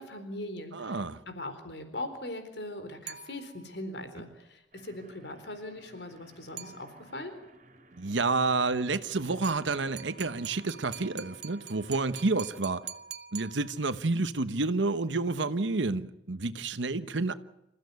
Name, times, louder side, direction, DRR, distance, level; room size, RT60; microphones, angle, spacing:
voice 1, 0.0-7.3, left 1 dB, 65° left, 4.0 m, -40 dB
voice 2, 0.7-1.2 8.0-12.8 13.3-17.3, right 3 dB, 85° right, 1.1 m, -29 dB
sound 1, 3.1-3.8 6.6-7.3 9.4-14.1, right 9 dB, 65° right, 1.0 m, -45 dB
sound 2, 4.7-12.6, right 2 dB, 45° right, 3.3 m, -58 dB
27.5 x 15.5 x 9.5 m
head